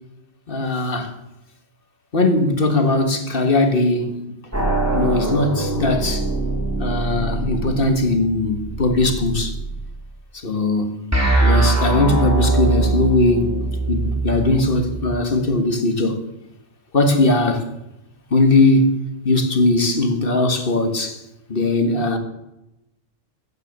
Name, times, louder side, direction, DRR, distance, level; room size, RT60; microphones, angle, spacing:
voice 1, 0.5-1.2 2.1-4.2 4.9-6.3 6.8-9.5 10.4-11.1 11.4-13.6 13.9-16.2 16.9-17.7 18.3-18.9 19.2-21.2 21.5-22.2, left 2 dB, 45° left, 1.8 m, -19 dB
sound 1, 4.5-9.8 11.1-15.0, right 2 dB, 10° right, 3.1 m, -22 dB
14.5 x 10.0 x 6.7 m
omnidirectional pair, 1.3 m